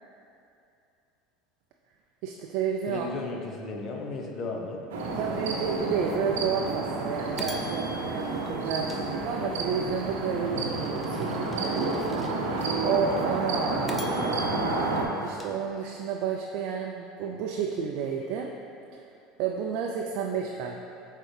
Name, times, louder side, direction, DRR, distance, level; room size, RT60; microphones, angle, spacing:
voice 1, 2.2-3.1 5.2-12.3 12.8-14.1 15.2-18.5 18.9-19.0 19.4-20.8, right 6 dB, 65° right, 1 dB, 0.4 m, -31 dB
voice 2, 2.9-4.8 13.8-14.2, left 3 dB, 45° left, 1 dB, 0.8 m, -35 dB
sound 1, 4.9-15.0, right 2 dB, 90° right, 0.7 m, -30 dB
sound 2, 6.1-6.2 6.7-6.8 7.4-9.7 10.2-12.7 13.2-13.3 13.9-16.2, left 1 dB, 5° left, 0.6 m, -45 dB
7.7 x 3.7 x 3.3 m, 2.6 s
supercardioid pair, 100°, 0 cm